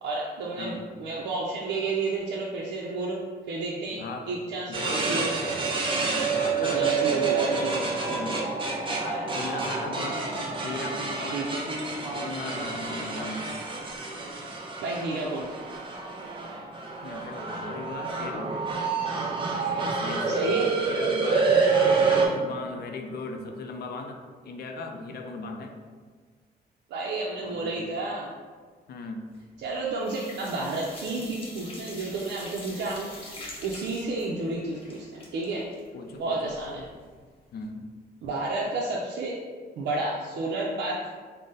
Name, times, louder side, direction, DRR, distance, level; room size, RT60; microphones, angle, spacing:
voice 1, 0.0-3.2 3.5-5.3 6.6-7.8 11.3-11.6 14.8-15.5 20.3-20.7 26.9-28.3 29.6-33.1 33.6-35.7 36.2-36.8 38.2-39.4 39.8-41.1, right 3 dB, 90° right, -3 dB, 0.5 m, -31 dB
voice 2, 3.9-4.3 4.7-5.3 6.0-7.3 8.1-8.4 9.3-10.3 10.6-11.5 12.1-13.5 17.0-18.6 19.6-25.7 27.4-27.8 28.9-29.3 32.6-32.7 35.9-36.9 37.5-37.9, left 3 dB, 65° left, 4 dB, 0.4 m, -38 dB
sound 1, 4.7-22.3, right 4 dB, 30° right, 0.6 m, -28 dB
sound 2, 29.3-29.8 30.0-36.9 37.2-37.3 37.6-37.7, left 2 dB, 30° left, 0.8 m, -44 dB
3.9 x 2.1 x 3.7 m, 1.5 s
cardioid pair, 115°, 18 cm